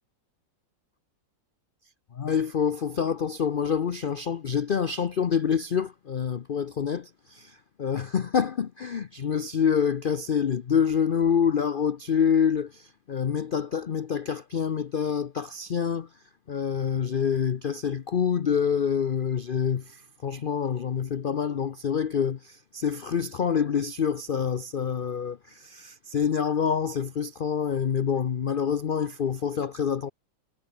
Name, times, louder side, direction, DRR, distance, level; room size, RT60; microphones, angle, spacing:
voice 1, 2.1-16.1 16.5-30.1, left 7 dB, 65° left, 0.5 m, -27 dB
omnidirectional pair, 1.9 m